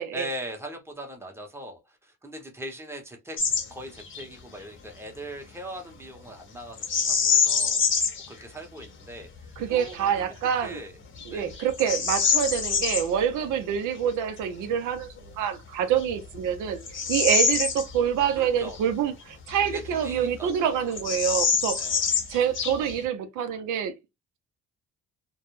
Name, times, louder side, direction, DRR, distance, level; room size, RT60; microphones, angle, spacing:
voice 1, 0.1-3.4 3.7-7.8 8.3-10.3 10.6-11.0 11.3-11.6 13.5-13.6 18.4-18.8 19.6-20.9 21.8-22.1, equal, 10° right, 0.7 m, -40 dB
Bird vocalization bird call bird song, 3.4-3.7 4.0-4.2 6.8-8.3 8.8-8.9 9.5-9.9 10.5-10.6 11.2-13.1 15.2-15.3 15.9-18.4 18.7-18.8 19.5-20.3 20.5-20.6 20.9-23.0, left 6 dB, 40° left, 0.7 m, -25 dB
voice 2, 9.6-10.8 11.3-15.1 15.4-16.8 17.1-21.8 22.3-24.0, right 8 dB, 90° right, 0.5 m, -26 dB
2.2 x 2.0 x 3.0 m
cardioid pair, 90°, 30 cm